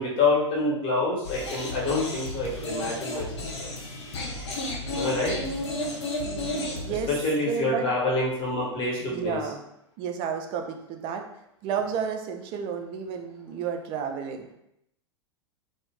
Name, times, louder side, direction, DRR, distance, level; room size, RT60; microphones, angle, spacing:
voice 1, 0.0-3.3 3.6-3.7 4.9-5.3 7.1-9.4, left 2 dB, 35° left, -4 dB, 1.0 m, -26 dB
sound 1, 1.2-7.1, left 1 dB, 70° left, 0.6 m, -33 dB
voice 2, 6.2-7.1 7.4-7.8 9.1-9.6 10.0-11.2 11.6-14.5, right 7 dB, 35° right, 4 dB, 0.4 m, -31 dB
2.3 x 2.1 x 3.3 m, 0.78 s
figure-of-eight pair, 90°, 15 cm